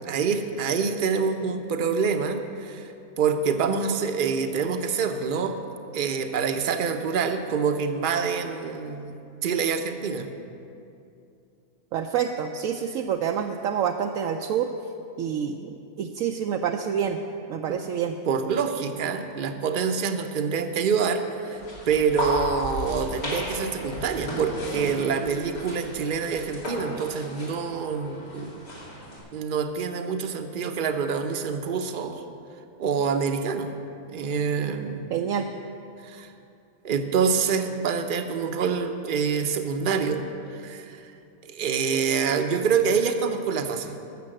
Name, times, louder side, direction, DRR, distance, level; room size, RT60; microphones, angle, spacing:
voice 1, 0.0-5.6 5.9-10.3 17.7-17.8 18.3-28.5 29.3-32.2 32.8-33.7 34.1-35.2 36.0-36.3 36.8-40.2 40.5-41.1 41.4-44.0, right 6 dB, 45° right, 7 dB, 0.7 m, -26 dB
voice 2, 11.9-14.7 15.2-17.2 17.5-18.1 35.1-35.5, right 8 dB, 75° right, 4 dB, 1.0 m, -27 dB
sound 1, 21.5-29.2, equal, 90° left, 3.1 m, -34 dB
13.0 x 6.9 x 7.6 m, 2.6 s
omnidirectional pair, 1.5 m